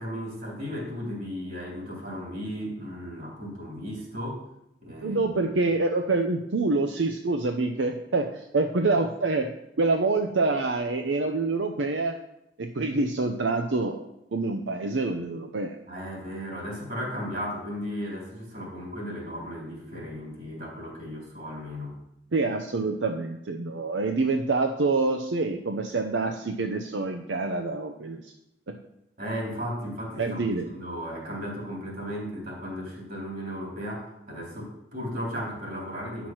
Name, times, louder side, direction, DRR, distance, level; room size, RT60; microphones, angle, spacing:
voice 1, 0.0-4.4 4.8-5.3 15.9-22.0 29.2-36.3, equal, 55° right, -2 dB, 3.8 m, -35 dB
voice 2, 5.0-9.5 9.8-12.2 12.6-14.0 14.3-15.8 22.3-28.3 28.7-28.8 30.2-30.7, right 3 dB, 85° right, 5 dB, 0.7 m, -26 dB
10.0 x 6.1 x 6.1 m, 0.84 s
head